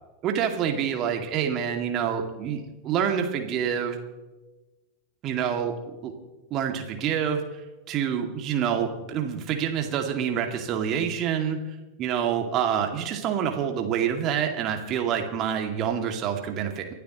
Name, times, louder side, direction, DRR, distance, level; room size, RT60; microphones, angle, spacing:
voice 1, 0.2-4.0 5.2-5.7 6.0-6.1 6.5-7.4 7.9-11.6 12.0-16.9, right 8 dB, 35° right, 4 dB, 2.4 m, -27 dB
30.0 x 12.0 x 3.1 m, 1.1 s
figure-of-eight pair, 90°, 0 cm